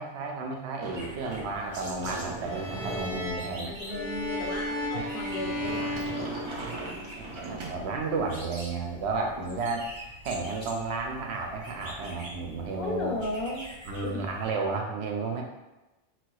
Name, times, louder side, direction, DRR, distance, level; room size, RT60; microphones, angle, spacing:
voice 1, 0.0-3.7 4.9-5.0 6.7-6.8 7.5-9.9 10.2-13.2 13.9-15.4, right 3 dB, 85° right, 2 dB, 0.8 m, -32 dB
Sliding door, 0.8-8.3, right 2 dB, 50° right, 0.3 m, -41 dB
sound 1, 0.9-14.5, equal, 30° right, 0.8 m, -46 dB
sound 2, 2.4-7.0, left 1 dB, 45° left, 1.0 m, -34 dB
voice 2, 2.7-6.6 12.8-13.6 14.0-14.2, left 1 dB, 65° left, -2 dB, 0.8 m, -36 dB
4.2 x 2.1 x 2.3 m, 1.0 s
omnidirectional pair, 1.1 m